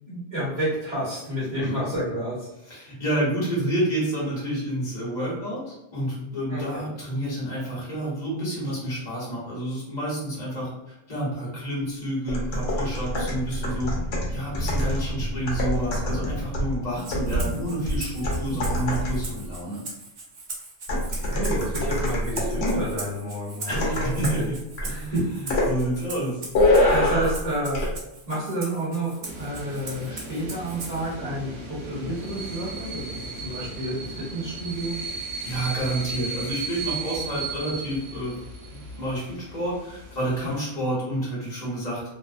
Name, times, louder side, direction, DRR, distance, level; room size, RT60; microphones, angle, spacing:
voice 1, 0.1-2.9 6.5-6.8 16.9-17.0 17.4-17.6 18.5-18.6 21.1-24.4 24.9-25.2 26.9-27.8 28.3-34.9 40.4-40.5, right 1 dB, 35° right, -10 dB, 1.1 m, -30 dB
voice 2, 2.7-14.0 14.3-19.8 21.9-22.0 23.6-24.6 24.9-25.0 25.3-26.4 35.4-38.4 38.7-42.1, right 1 dB, 35° left, -6 dB, 1.1 m, -29 dB
sound 1, 12.3-19.4 20.9-22.9 23.7-24.4 24.8-25.0 25.5-25.8 26.5-27.4 27.7-27.9, left 1 dB, 65° left, 0.8 m, -25 dB
Rattle (instrument), 17.0-31.1, right 3 dB, 50° right, 0.6 m, -40 dB
sound 2, 29.2-40.5, right 3 dB, 85° right, 1.0 m, -36 dB
2.7 x 2.1 x 2.4 m, 0.90 s
omnidirectional pair, 1.3 m